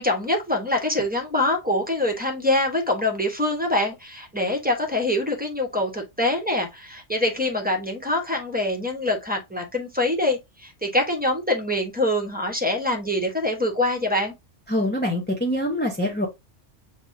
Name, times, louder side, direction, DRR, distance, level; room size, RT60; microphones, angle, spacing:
voice 1, 0.0-14.3, left 1 dB, 10° right, 0.9 m, -24 dB
voice 2, 14.7-16.3, equal, 10° left, 0.5 m, -24 dB
6.4 x 2.9 x 2.6 m
omnidirectional pair, 1.3 m